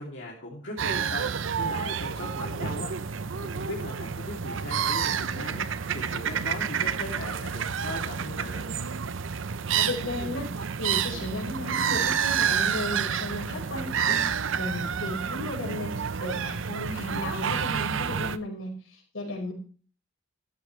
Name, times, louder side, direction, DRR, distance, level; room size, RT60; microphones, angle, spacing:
voice 1, 0.0-8.7, left 1 dB, 60° left, -3 dB, 3.0 m, -39 dB
sound 1, 0.8-18.4, right 7 dB, 70° right, 0.6 m, -29 dB
voice 2, 9.7-14.3 14.6-19.5, left 1 dB, 85° left, -1 dB, 5.2 m, -35 dB
14.5 x 12.5 x 3.3 m, 0.39 s
head